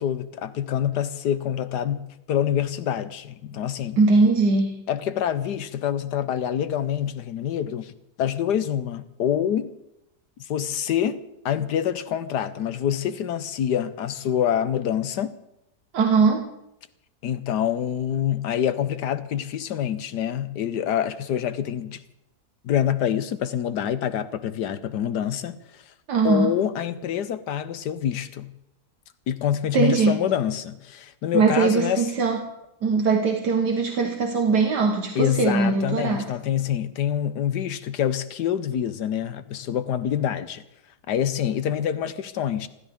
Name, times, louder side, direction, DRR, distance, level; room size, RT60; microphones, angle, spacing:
voice 1, 0.0-4.0 4.9-7.9 8.2-9.7 10.5-15.4 17.2-22.0 22.6-25.8 26.2-28.5 29.3-32.1 35.1-40.6 41.1-42.7, left 9 dB, 80° left, 1.5 m, -26 dB
voice 2, 4.0-4.8 15.9-16.5 26.1-26.6 29.7-30.2 31.3-32.5 32.8-36.3, right 4 dB, 80° right, 1.9 m, -21 dB
28.5 x 13.0 x 3.6 m
omnidirectional pair, 1.8 m